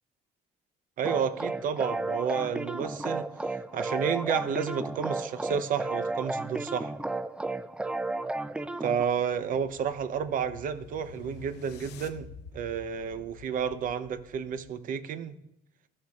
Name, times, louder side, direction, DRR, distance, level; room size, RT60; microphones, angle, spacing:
sound 1, 1.0-9.0, right 2 dB, 5° right, 0.3 m, -33 dB
voice 1, 1.0-3.2 3.7-6.9 8.8-12.3 12.5-15.4, right 7 dB, 55° right, 12 dB, 0.7 m, -31 dB
sound 2, 8.8-14.8, left 6 dB, 85° left, 0.8 m, -50 dB
14.0 x 6.4 x 2.4 m, 0.82 s
cardioid pair, 110°, 17 cm